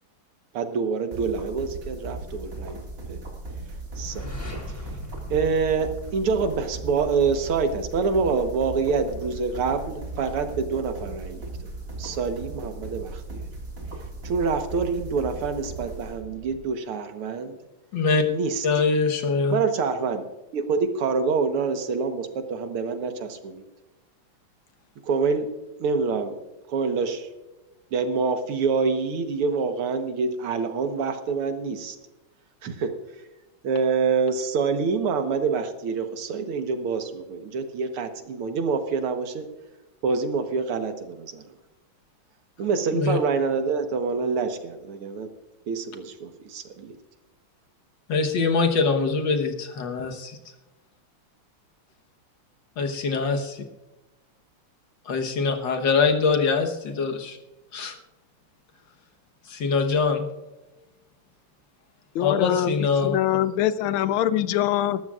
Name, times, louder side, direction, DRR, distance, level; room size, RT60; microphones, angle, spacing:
voice 1, 0.5-2.8 3.1-3.2 4.0-4.3 4.7-4.8 5.3-11.5 12.0-13.4 14.2-17.6 18.3-18.7 19.5-20.3 20.5-23.6 25.0-25.5 25.8-26.4 26.7-27.3 27.9-32.0 32.6-32.9 33.6-39.5 40.0-41.4 42.6-45.3 45.7-47.0, right 5 dB, 85° right, 2.1 m, -26 dB
sound 1, 1.1-16.6, right 2 dB, 40° right, 2.7 m, -37 dB
sound 2, 3.9-6.7, left 1 dB, 25° left, 2.9 m, -39 dB
voice 2, 17.9-18.2 18.6-19.6 42.9-43.2 48.1-50.4 52.8-53.5 55.1-57.4 57.7-58.0 59.5-60.3 62.2-63.2, left 4 dB, 60° left, 1.8 m, -23 dB
voice 3, 62.1-65.0, left 12 dB, 80° left, 1.4 m, -23 dB
20.0 x 13.5 x 2.4 m
omnidirectional pair, 2.3 m